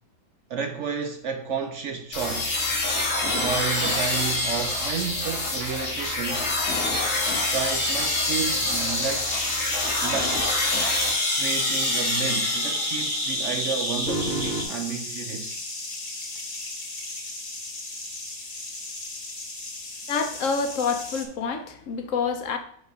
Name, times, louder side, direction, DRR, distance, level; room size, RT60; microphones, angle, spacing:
voice 1, 0.5-2.6 3.3-6.5 7.3-9.3 10.0-10.4 11.3-15.6, right 6 dB, 70° right, 0.7 m, -31 dB
sound 1, 2.1-13.3, left 2 dB, 85° left, 2.0 m, -27 dB
sound 2, 2.9-14.6, equal, 45° right, 2.0 m, -31 dB
sound 3, 7.0-21.2, left 2 dB, 30° left, 1.0 m, -34 dB
voice 2, 20.1-22.6, left 5 dB, 60° left, 1.0 m, -27 dB
4.9 x 4.3 x 5.2 m
omnidirectional pair, 1.7 m